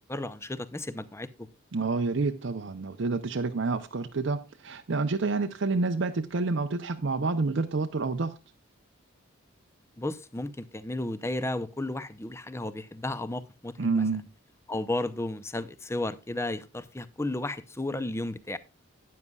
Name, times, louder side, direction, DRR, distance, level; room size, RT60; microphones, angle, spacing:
voice 1, 0.1-1.5 10.0-14.0 14.7-18.6, left 2 dB, 10° left, 0.5 m, -33 dB
voice 2, 1.7-8.3 13.8-14.3, right 3 dB, 55° right, 0.6 m, -28 dB
12.5 x 9.5 x 2.3 m
head